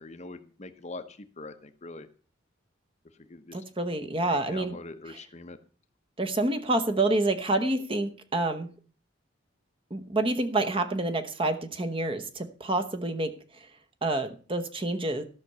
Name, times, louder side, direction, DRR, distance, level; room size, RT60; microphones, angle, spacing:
voice 1, 0.0-2.1 3.3-3.6 4.3-5.6, left 3 dB, 35° left, 8 dB, 0.9 m, -43 dB
voice 2, 3.5-4.8 5.1-5.2 6.2-8.7 9.9-13.3 14.0-15.2, right 2 dB, 30° right, 7 dB, 1.0 m, -28 dB
13.0 x 6.0 x 6.7 m, 0.40 s
head